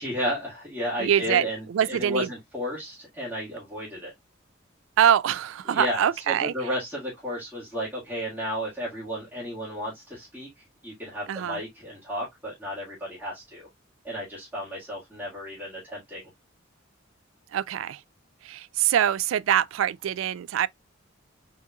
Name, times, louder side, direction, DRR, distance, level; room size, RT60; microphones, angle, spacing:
voice 1, 0.0-4.1 5.7-10.5 10.8-13.7 14.0-16.2, equal, 10° right, 1.9 m, -33 dB
voice 2, 1.0-2.3 5.0-6.7 11.3-11.6 17.5-18.0 18.4-20.7, right 9 dB, 80° right, 0.3 m, -24 dB
4.2 x 3.7 x 2.3 m
head